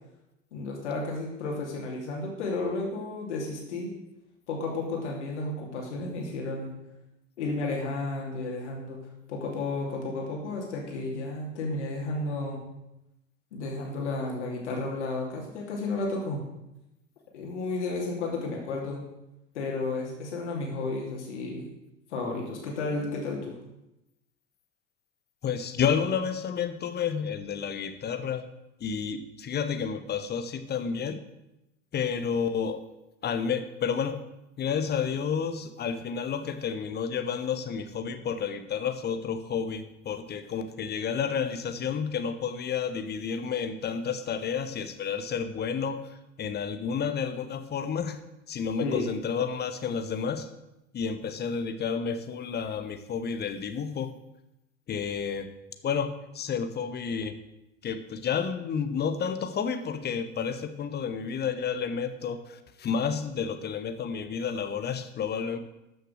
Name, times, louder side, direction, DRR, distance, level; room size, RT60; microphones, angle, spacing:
voice 1, 0.5-3.9 4.5-6.7 7.4-9.0 9.3-12.6 13.5-16.4 17.3-19.0 19.5-21.7 22.1-23.6 48.8-49.1, left 3 dB, 65° left, -1 dB, 2.9 m, -32 dB
voice 2, 25.4-28.5 28.8-31.2 31.9-32.8 33.2-34.2 34.6-48.2 48.5-50.5 50.9-54.1 54.9-55.5 55.8-57.4 57.8-65.6, left 6 dB, 25° left, 9 dB, 1.2 m, -30 dB
13.0 x 6.6 x 6.5 m, 0.91 s
figure-of-eight pair, 75°, 37 cm